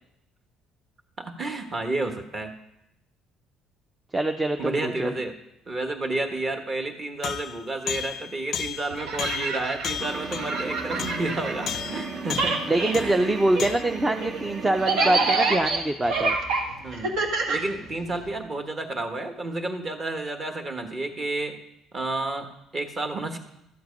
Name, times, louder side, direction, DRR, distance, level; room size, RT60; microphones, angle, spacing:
voice 1, 1.2-2.5 4.6-5.3 5.7-13.3 16.8-17.1 17.5-21.6 21.9-22.5 22.7-23.4, right 2 dB, 30° right, 6 dB, 1.4 m, -31 dB
voice 2, 4.1-5.1 12.7-16.4, right 1 dB, 15° right, 6 dB, 0.5 m, -24 dB
sound 1, 7.2-13.2 13.6-13.8, left 9 dB, 45° left, 0.4 m, -34 dB
sound 2, 8.9-12.0 12.3-18.3, right 3 dB, 70° right, 1.6 m, -28 dB
sound 3, 10.0-15.6, right 4 dB, 50° right, 0.9 m, -37 dB
13.0 x 7.8 x 5.2 m, 0.83 s
cardioid pair, 125°, 0 cm